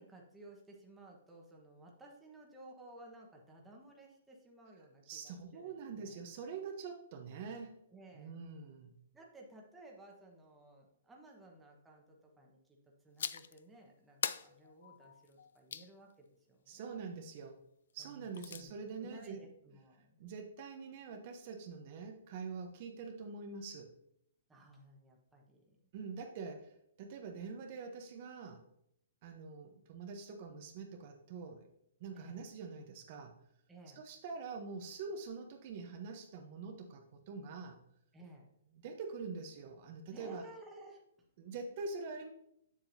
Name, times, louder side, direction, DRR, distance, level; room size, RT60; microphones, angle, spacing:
voice 1, 0.0-6.2 7.9-8.3 9.1-12.8 13.0-16.8 18.0-20.2 24.5-25.8 32.1-32.4 33.7-34.0 38.1-38.5 40.1-41.3, right 1 dB, 10° right, -1 dB, 1.1 m, -56 dB
voice 2, 5.1-7.8 8.1-8.9 16.7-17.6 17.9-19.4 20.2-23.9 25.9-28.6 29.2-31.7 32.0-33.3 33.9-37.8 38.8-40.4 41.4-42.3, right 4 dB, 45° right, 3 dB, 0.8 m, -45 dB
sound 1, 13.2-13.6 14.2-15.9 18.0-18.6, left 8 dB, 70° left, 0.3 m, -41 dB
7.3 x 7.2 x 2.7 m, 0.75 s
hypercardioid pair, 150°, 0 cm